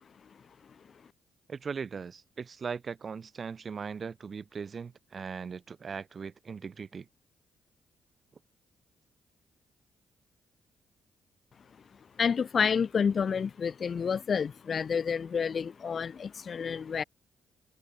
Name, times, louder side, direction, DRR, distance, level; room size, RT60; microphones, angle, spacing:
voice 1, 1.5-7.1, right 5 dB, 50° right, 3.7 m, -39 dB
voice 2, 12.2-17.0, left 6 dB, 50° left, 1.5 m, -29 dB
hypercardioid pair, 50°, 0 cm